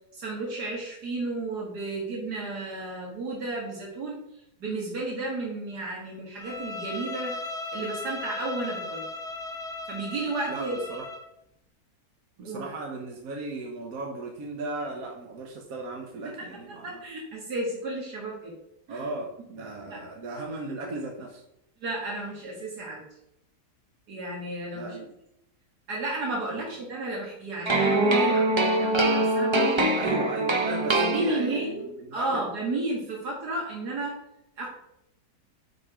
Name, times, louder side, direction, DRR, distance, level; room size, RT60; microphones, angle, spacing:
voice 1, 0.1-4.2 4.6-7.4 7.7-9.0 9.9-10.8 12.4-12.6 16.8-18.5 18.9-19.1 19.9-20.0 21.8-23.0 24.1-25.0 25.9-29.9 30.8-34.2 34.6-34.7, right 2 dB, 80° right, -3 dB, 2.2 m, -33 dB
Bowed string instrument, 6.4-11.3, left 2 dB, 5° left, 0.7 m, -37 dB
voice 2, 10.5-11.1 12.4-17.0 18.9-21.4 24.7-25.1 26.5-26.6 30.0-32.4, right 3 dB, 65° right, 1 dB, 1.5 m, -36 dB
sound 1, 27.7-31.8, right 2 dB, 30° right, 0.5 m, -23 dB
9.4 x 4.9 x 5.0 m, 0.82 s
omnidirectional pair, 1.7 m